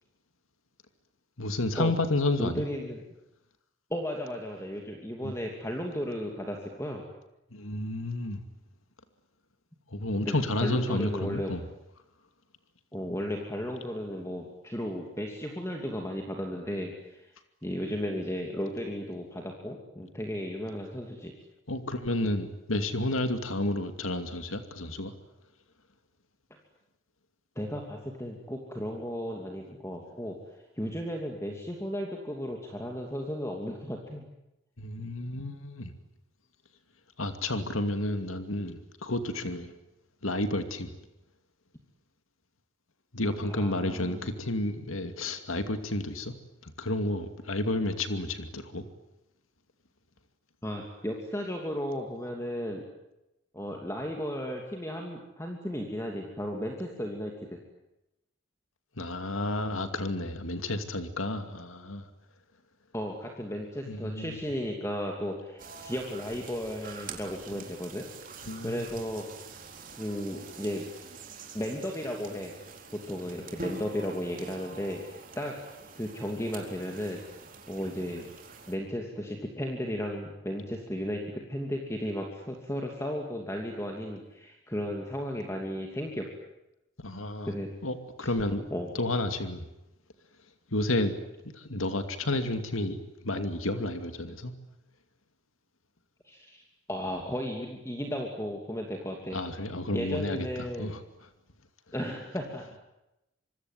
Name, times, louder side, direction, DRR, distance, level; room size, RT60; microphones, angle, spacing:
voice 1, 1.4-2.7 5.2-5.3 7.5-8.4 9.9-11.6 21.7-25.1 34.8-35.9 37.2-39.7 40.2-40.9 43.1-46.3 46.6-48.8 59.0-62.1 63.8-64.4 67.5-67.6 68.5-68.9 87.0-87.5 87.8-88.6 88.9-89.7 90.7-91.1 91.4-94.5 99.3-101.0, left 1 dB, 90° left, 8 dB, 2.5 m, -31 dB
voice 2, 2.4-3.0 3.9-7.1 10.2-11.5 12.9-17.3 17.6-21.3 27.6-30.4 30.8-34.3 43.4-44.2 50.6-52.8 53.5-57.6 62.9-69.2 70.0-70.9 71.5-72.5 72.9-75.6 75.9-77.2 77.7-78.3 78.7-86.3 87.5-87.7 88.2-88.3 88.7-88.9 96.2-96.6 96.9-99.4 99.9-100.9 101.9-102.6, equal, 15° left, 2 dB, 2.8 m, -35 dB
sound 1, 65.6-78.7, right 4 dB, 40° right, 4.1 m, -46 dB
26.5 x 24.0 x 9.4 m, 0.92 s
head